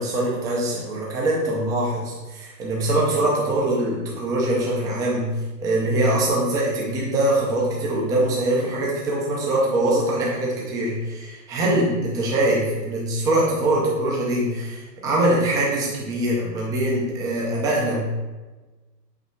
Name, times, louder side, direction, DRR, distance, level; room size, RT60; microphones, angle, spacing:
voice 1, 0.0-5.3 5.6-18.0, right 1 dB, 5° right, -4 dB, 0.5 m, -23 dB
8.3 x 3.2 x 4.5 m, 1.2 s
hypercardioid pair, 150°, 50 cm